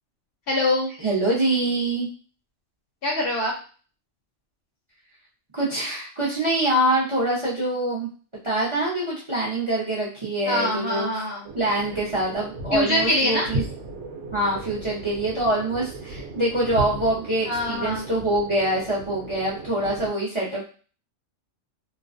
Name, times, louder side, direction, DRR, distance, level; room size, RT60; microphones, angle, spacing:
voice 1, 0.5-0.9 3.0-3.5 10.5-11.5 12.7-13.5 17.4-18.0 19.8-19.9, left 1 dB, 60° left, -1 dB, 0.7 m, -24 dB
voice 2, 1.0-2.1 5.5-8.1 8.4-11.1 11.5-13.6 14.3-20.7, right 1 dB, 35° right, -5 dB, 0.5 m, -25 dB
sound 1, 11.4-20.1, right 2 dB, 70° right, 0.9 m, -35 dB
2.4 x 2.2 x 2.4 m, 0.39 s
omnidirectional pair, 1.3 m